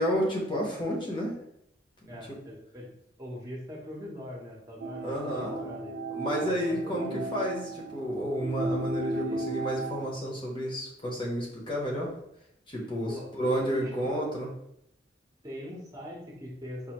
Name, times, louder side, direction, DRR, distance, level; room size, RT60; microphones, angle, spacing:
voice 1, 0.0-1.3 2.0-2.4 5.0-5.6 6.1-12.1 12.7-14.5, equal, 25° left, -2 dB, 0.9 m, -31 dB
voice 2, 2.1-2.9 3.2-6.0 6.4-7.2 9.2-9.4 13.0-14.1 15.4-16.9, left 1 dB, 20° right, -3 dB, 0.9 m, -42 dB
sound 1, 4.8-10.1, right 2 dB, 55° right, 0.4 m, -35 dB
5.2 x 2.7 x 2.9 m, 0.77 s
head